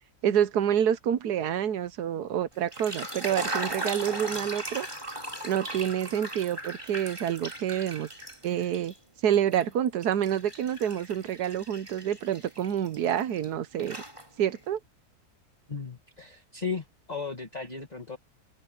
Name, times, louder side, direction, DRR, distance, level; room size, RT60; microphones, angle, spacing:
voice 1, 0.2-4.9 5.4-8.1 8.4-8.9 9.2-14.0 14.4-14.8, right 9 dB, 90° right, 1.5 m, -27 dB
sound 1, 2.5-9.0 9.3-13.5 13.8-14.6, right 1 dB, 20° right, 3.5 m, -38 dB
voice 2, 15.7-18.2, left 5 dB, 25° left, 2.1 m, -36 dB
open air
omnidirectional pair, 1.6 m